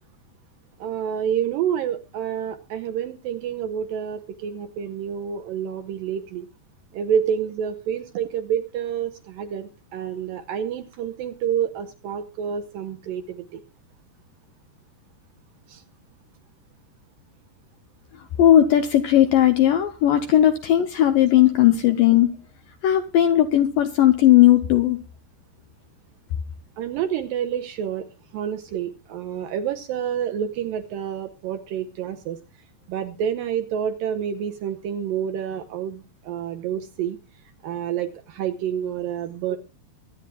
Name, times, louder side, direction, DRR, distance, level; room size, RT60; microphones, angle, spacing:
voice 1, 0.8-6.5 6.9-13.6 15.7-15.8 26.8-28.1 28.3-32.4 32.9-37.2 37.6-39.6, right 8 dB, 75° right, 8 dB, 2.1 m, -28 dB
voice 2, 18.4-22.3 22.8-25.0, left 12 dB, 80° left, 8 dB, 2.0 m, -17 dB
23.5 x 9.8 x 2.3 m, 0.29 s
omnidirectional pair, 4.8 m